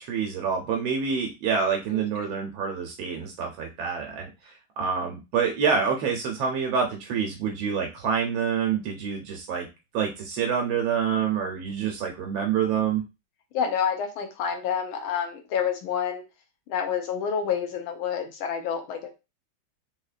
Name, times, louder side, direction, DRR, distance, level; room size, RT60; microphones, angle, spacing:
voice 1, 0.0-4.3 4.8-9.7 9.9-13.0, right 6 dB, 80° right, 2 dB, 1.4 m, -27 dB
voice 2, 1.9-2.3 13.5-16.2 16.7-19.1, left 7 dB, 90° left, 4 dB, 1.6 m, -28 dB
3.9 x 2.8 x 2.4 m, 0.26 s
omnidirectional pair, 2.2 m